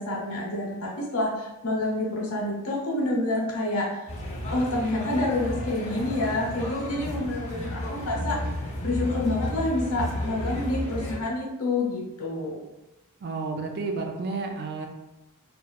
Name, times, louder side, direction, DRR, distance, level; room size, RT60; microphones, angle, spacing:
voice 1, 0.0-3.9 4.5-8.4 8.8-12.6, left 2 dB, 85° left, -3 dB, 0.8 m, -28 dB
sound 1, 4.1-11.2, left 1 dB, 30° left, 0.5 m, -32 dB
voice 2, 13.2-14.9, right 3 dB, 50° right, 3 dB, 0.4 m, -31 dB
2.9 x 2.2 x 2.3 m, 0.99 s
head